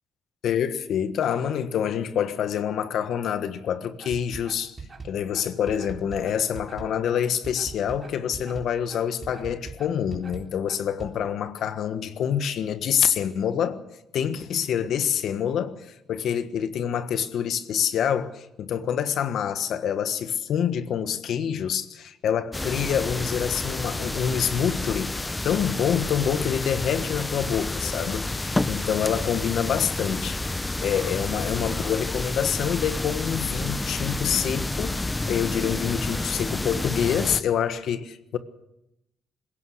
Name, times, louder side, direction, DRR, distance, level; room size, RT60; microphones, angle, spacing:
voice 1, 0.4-4.8 5.0-13.8 14.1-30.4 30.8-35.0 35.3-38.4, left 8 dB, 75° left, 1.4 m, -26 dB
sound 1, 4.0-11.1, right 4 dB, 35° right, 3.7 m, -40 dB
sound 2, 22.5-37.4, left 2 dB, 20° left, 0.8 m, -30 dB
20.5 x 16.5 x 8.0 m
cardioid pair, 75°, 0 cm